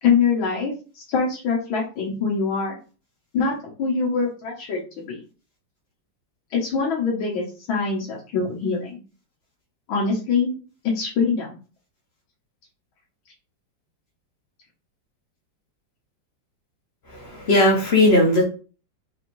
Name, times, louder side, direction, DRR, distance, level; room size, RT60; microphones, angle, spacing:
voice 1, 0.0-2.8 3.3-5.2 6.5-9.0 9.9-10.5 10.8-11.6, left 5 dB, 90° left, -3 dB, 1.7 m, -24 dB
voice 2, 17.1-18.4, left 1 dB, 45° left, 0 dB, 0.9 m, -17 dB
4.6 x 3.0 x 2.6 m, 0.35 s
omnidirectional pair, 2.1 m